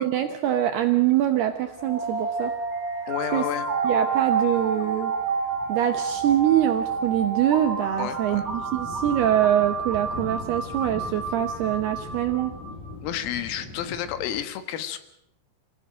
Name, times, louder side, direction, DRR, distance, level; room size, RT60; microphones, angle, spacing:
voice 1, 0.0-2.5 3.3-3.5 3.8-5.1 5.7-12.5, right 12 dB, 80° right, 6 dB, 2.3 m, -24 dB
sound 1, 0.8-14.4, left 3 dB, 50° left, 4.9 m, -43 dB
sound 2, 1.8-12.7, right 4 dB, 20° right, 2.6 m, -29 dB
voice 2, 3.1-3.7 8.0-8.5 13.0-15.0, left 11 dB, 85° left, 10 dB, 4.1 m, -31 dB
27.0 x 16.0 x 7.7 m, 0.81 s
omnidirectional pair, 5.9 m